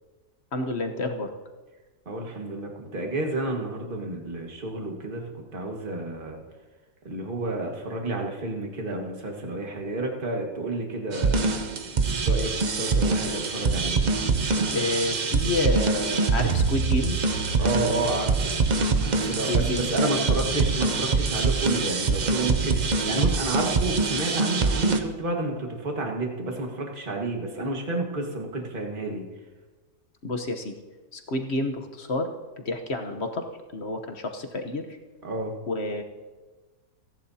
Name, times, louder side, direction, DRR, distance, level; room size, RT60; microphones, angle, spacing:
voice 1, 0.5-1.3 14.7-17.2 19.5-20.5 30.2-30.8 31.1-32.3 32.6-33.5 33.7-35.0 35.7-36.0, left 2 dB, 45° left, 5 dB, 1.1 m, -29 dB
voice 2, 2.1-5.2 5.5-6.4 7.1-11.4 12.2-14.0 17.6-18.5 19.1-29.3 35.2-35.5, right 2 dB, 30° right, 1 dB, 1.8 m, -30 dB
sound 1, 11.1-25.0, right 4 dB, 90° right, 0.4 m, -24 dB
29.0 x 11.0 x 2.8 m, 1.3 s
omnidirectional pair, 1.9 m